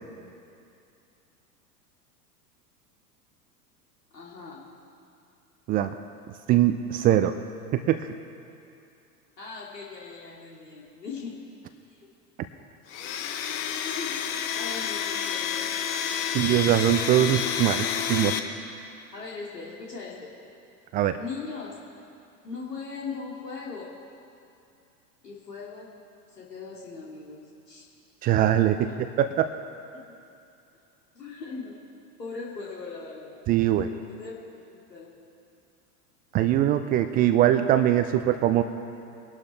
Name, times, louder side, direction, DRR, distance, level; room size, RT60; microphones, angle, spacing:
voice 1, 4.1-4.7 9.4-11.4 11.9-12.1 13.8-14.2 14.5-15.7 19.1-20.4 21.2-21.8 22.4-24.0 25.2-26.0 26.3-27.8 28.8-29.0 29.9-30.0 31.1-31.8 32.2-33.4 34.1-34.4 34.7-35.1, left 4 dB, 85° left, -4 dB, 2.5 m, -39 dB
voice 2, 6.5-7.3 7.7-8.1 16.3-18.3 20.9-21.2 28.2-28.9 29.2-29.5 33.5-33.9 36.3-38.6, right 12 dB, 20° right, 9 dB, 0.3 m, -22 dB
Domestic sounds home sounds, 12.9-18.4, left 8 dB, 55° left, 1.2 m, -29 dB
23.0 x 12.0 x 3.3 m, 2.6 s
hypercardioid pair, 95°, 47 cm